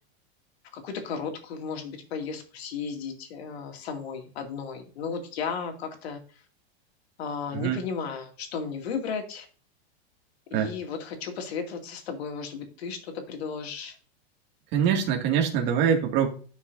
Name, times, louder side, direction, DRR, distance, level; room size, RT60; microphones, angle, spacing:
voice 1, 0.7-6.2 7.2-9.5 10.5-13.9, left 6 dB, 80° left, 4 dB, 2.5 m, -34 dB
voice 2, 14.7-16.3, right 8 dB, 35° right, 1 dB, 2.2 m, -24 dB
12.0 x 6.1 x 2.7 m, 0.40 s
supercardioid pair, 160°, 31 cm